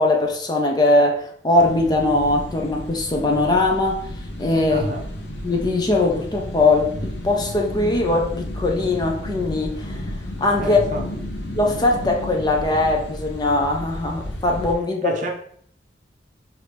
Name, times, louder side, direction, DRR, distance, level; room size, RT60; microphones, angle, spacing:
voice 1, 0.0-4.0 4.4-4.9 5.4-10.1 10.4-10.8 11.5-15.1, left 2 dB, 25° left, 0.6 m, -20 dB
sound 1, 1.6-14.8, left 1 dB, 80° left, 0.7 m, -33 dB
voice 2, 4.7-5.1 10.6-11.0 15.0-15.3, right 1 dB, 45° right, 0.7 m, -28 dB
4.8 x 2.6 x 3.3 m
head